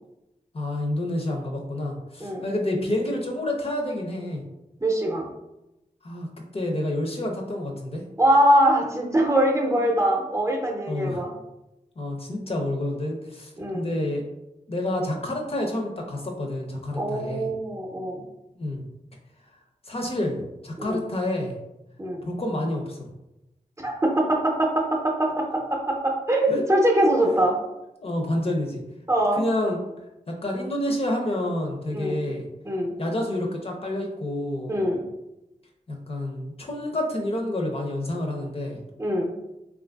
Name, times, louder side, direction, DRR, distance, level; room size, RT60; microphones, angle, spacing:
voice 1, 0.5-4.4 6.0-8.0 10.9-11.2 12.0-14.3 14.7-17.5 18.5-18.9 19.9-21.6 22.3-23.1 26.5-26.6 28.0-28.8 29.4-29.8 30.3-32.5 33.0-34.8 35.9-38.8, left 1 dB, 45° left, 0 dB, 0.6 m, -28 dB
voice 2, 4.8-5.3 8.2-11.3 13.6-13.9 16.9-18.2 20.8-21.0 22.0-22.2 23.8-27.6 29.1-29.4 31.9-32.2 32.6-32.9 34.7-35.0 39.0-39.3, right 1 dB, 20° right, -1 dB, 0.6 m, -23 dB
3.1 x 2.4 x 2.2 m, 0.92 s
cardioid pair, 55°, 14 cm